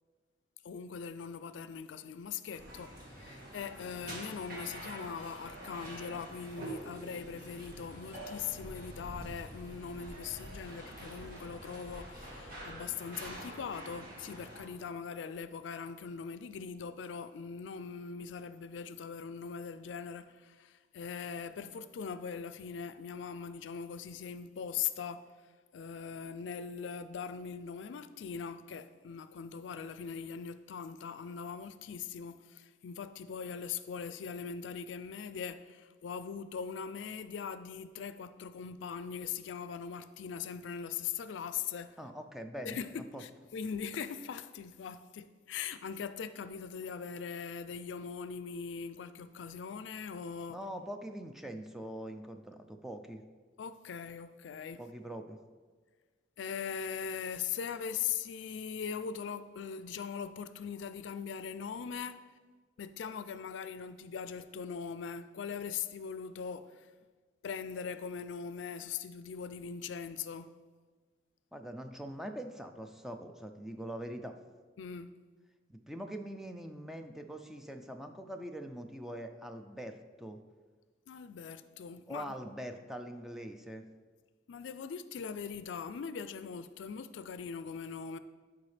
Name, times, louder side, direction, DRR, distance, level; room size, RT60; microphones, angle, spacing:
voice 1, 0.6-25.3 25.7-42.0 42.6-50.6 53.6-54.8 56.4-62.2 62.8-66.9 67.4-70.5 74.8-75.1 81.1-82.3 84.5-88.2, left 6 dB, 85° left, 0.4 m, -41 dB
sound 1, 2.5-14.6, right 1 dB, 55° right, 1.7 m, -46 dB
voice 2, 42.0-43.2 50.5-53.2 54.8-55.4 71.5-74.4 75.7-80.4 82.1-83.9, equal, ahead, 0.4 m, -43 dB
11.0 x 4.7 x 3.3 m
head